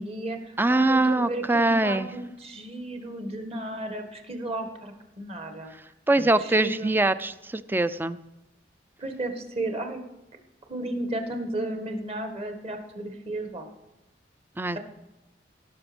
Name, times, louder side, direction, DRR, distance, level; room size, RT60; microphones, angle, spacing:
voice 1, 0.0-5.7 6.2-6.9 9.0-10.0 10.7-13.7, right 1 dB, 35° right, 5 dB, 1.7 m, -34 dB
voice 2, 0.6-2.1 6.1-8.2 14.6-14.8, right 2 dB, 10° right, 14 dB, 0.4 m, -23 dB
17.5 x 6.2 x 5.2 m, 0.98 s
head